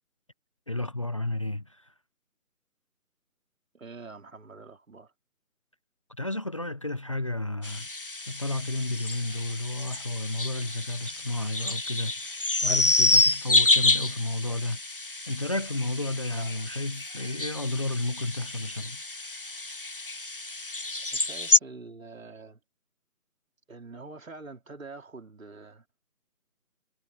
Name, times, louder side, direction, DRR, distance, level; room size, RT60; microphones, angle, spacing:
voice 1, 0.7-1.9 6.2-7.9 8.3-12.3 12.6-14.8 15.3-19.0, left 2 dB, 20° left, 1.0 m, -32 dB
voice 2, 3.7-5.1 16.3-16.6 21.1-22.6 23.7-25.8, right 3 dB, 60° right, 4.5 m, -45 dB
sound 1, 7.6-21.6, left 2 dB, 40° left, 0.6 m, -28 dB
figure-of-eight pair, 165°, 45 cm